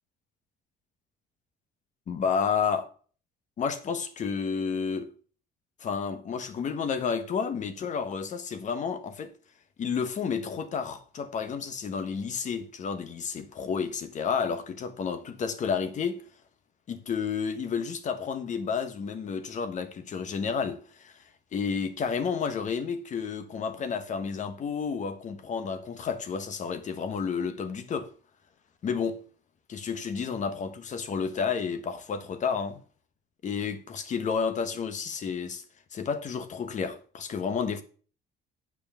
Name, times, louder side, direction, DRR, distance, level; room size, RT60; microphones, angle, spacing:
voice 1, 2.1-2.9 3.6-5.1 5.8-9.3 9.8-16.2 16.9-21.2 21.5-28.1 28.8-29.2 29.7-32.8 33.4-35.6 35.9-37.8, left 6 dB, 45° left, 1.4 m, -31 dB
9.1 x 5.0 x 7.1 m
cardioid pair, 110°, 17 cm